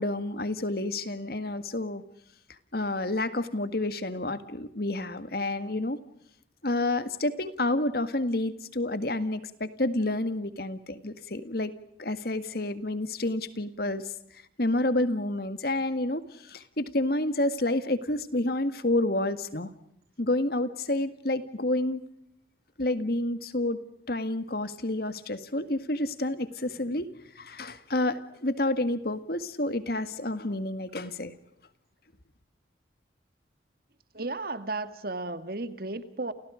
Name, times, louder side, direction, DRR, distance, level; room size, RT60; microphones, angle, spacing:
voice 1, 0.0-2.0 2.7-6.0 6.6-14.1 14.6-19.7 20.2-22.0 22.8-23.8 24.1-27.1 27.4-31.3, left 1 dB, 55° left, 12 dB, 1.9 m, -29 dB
voice 2, 34.1-36.3, right 2 dB, 55° right, 11 dB, 2.0 m, -34 dB
29.5 x 29.5 x 5.1 m, 0.74 s
head